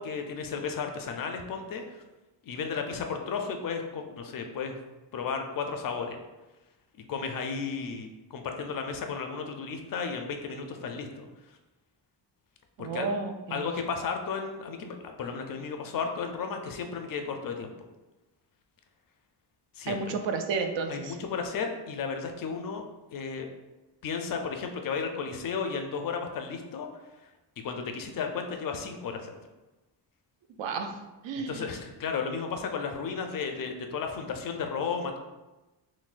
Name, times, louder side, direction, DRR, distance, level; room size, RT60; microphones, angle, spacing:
voice 1, 0.0-2.0 2.4-4.8 5.1-6.2 7.1-11.3 12.8-13.1 13.5-17.7 19.8-20.2 20.9-22.8 23.1-23.5 24.0-26.9 27.6-29.3 31.3-35.2, left 5 dB, 50° left, 4 dB, 0.4 m, -34 dB
voice 2, 12.8-13.7 19.9-21.2 30.6-31.0 31.2-31.7, right 4 dB, 80° right, 5 dB, 0.6 m, -32 dB
5.8 x 2.2 x 2.4 m, 1.1 s
wide cardioid pair, 170°, 44 cm